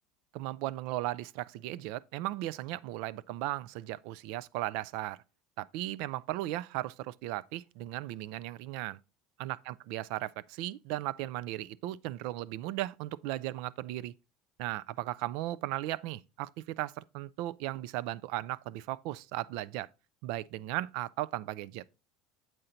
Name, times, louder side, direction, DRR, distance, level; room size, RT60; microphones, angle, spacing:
voice 1, 0.3-5.2 5.6-9.0 9.4-14.1 14.6-19.9 20.2-21.8, right 16 dB, 70° right, 0.3 m, -36 dB
7.8 x 4.3 x 3.8 m
supercardioid pair, 115°, 0 cm